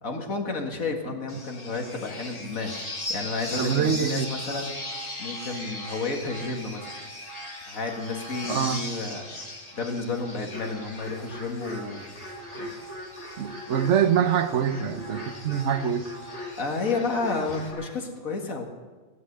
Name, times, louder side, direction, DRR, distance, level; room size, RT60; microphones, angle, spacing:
voice 1, 0.0-4.7 5.2-6.9 7.7-9.3 9.7-12.1 12.5-12.7 16.6-18.7, left 3 dB, 80° left, 2 dB, 2.3 m, -31 dB
sound 1, 1.3-17.7, left 1 dB, 30° left, 1.9 m, -39 dB
voice 2, 3.6-4.3 8.5-8.8 13.4-16.1, right 8 dB, 65° right, 10 dB, 1.1 m, -24 dB
sound 2, 10.5-17.9, left 1 dB, 55° left, 3.3 m, -40 dB
16.5 x 11.0 x 6.7 m, 1.3 s
omnidirectional pair, 1.4 m